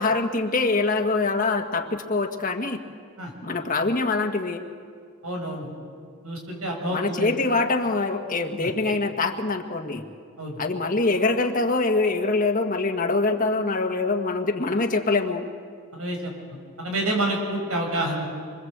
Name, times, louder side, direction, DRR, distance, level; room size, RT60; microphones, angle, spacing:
voice 1, 0.0-2.8 3.4-4.6 6.9-10.0 10.6-15.5, left 3 dB, 40° left, 4 dB, 1.5 m, -24 dB
voice 2, 5.2-5.7 6.2-7.3 10.4-10.6 15.9-18.2, right 1 dB, 85° right, 1 dB, 6.9 m, -28 dB
27.0 x 24.0 x 8.0 m, 2.1 s
head